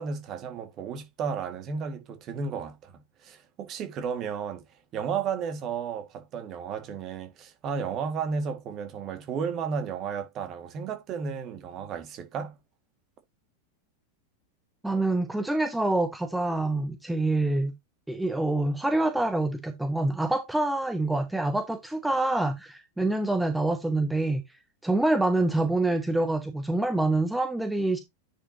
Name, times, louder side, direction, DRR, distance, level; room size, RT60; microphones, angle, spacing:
voice 1, 0.0-4.6 4.9-12.5, right 6 dB, 35° right, 1.8 m, -33 dB
voice 2, 14.8-17.7 18.1-24.4 24.8-28.0, right 2 dB, 5° right, 0.8 m, -26 dB
9.9 x 5.0 x 2.8 m
figure-of-eight pair, 90°, 0 cm